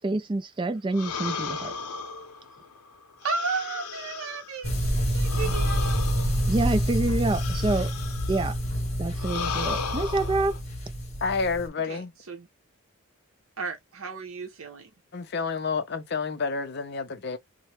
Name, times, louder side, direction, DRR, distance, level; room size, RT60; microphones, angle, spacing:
voice 1, 0.0-1.7 6.5-7.9 8.3-8.6 9.0-10.6, right 2 dB, 20° right, 0.3 m, -27 dB
sound 1, 0.9-4.6 5.2-8.6 9.2-10.6, left 5 dB, 90° left, 0.7 m, -36 dB
voice 2, 3.2-4.7 5.1-6.0 11.9-12.5 13.6-14.9, right 4 dB, 70° right, 0.7 m, -33 dB
sound 2, 4.6-11.7, equal, 30° left, 0.9 m, -27 dB
voice 3, 11.2-12.1 15.1-17.4, left 4 dB, 45° left, 0.5 m, -29 dB
3.0 x 2.1 x 2.9 m
head